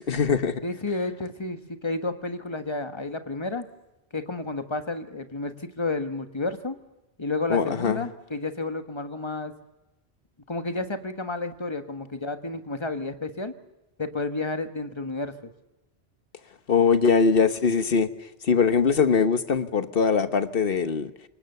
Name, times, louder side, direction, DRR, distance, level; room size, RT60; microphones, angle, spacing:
voice 1, 0.0-0.6 7.5-8.0 16.7-18.1 18.4-21.1, left 5 dB, 60° left, 1.3 m, -22 dB
voice 2, 0.6-3.7 4.1-6.8 7.2-9.5 10.5-13.5 14.0-15.5, left 2 dB, 25° left, 1.5 m, -31 dB
27.0 x 19.0 x 6.8 m
omnidirectional pair, 1.1 m